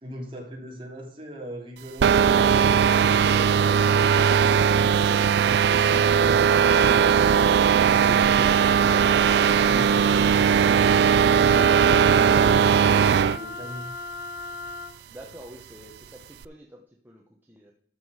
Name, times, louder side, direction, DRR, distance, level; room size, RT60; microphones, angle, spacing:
voice 1, 0.0-7.1 8.0-8.6, right 1 dB, 30° right, 0 dB, 2.6 m, -39 dB
sound 1, 2.0-13.4, right 7 dB, 70° right, 0.3 m, -19 dB
Wind instrument woodwind instrument, 8.7-15.0, left 3 dB, 70° left, 1.6 m, -38 dB
voice 2, 15.1-17.7, right 1 dB, 10° right, 0 dB, 1.0 m, -47 dB
13.0 x 6.1 x 4.9 m, 0.63 s
head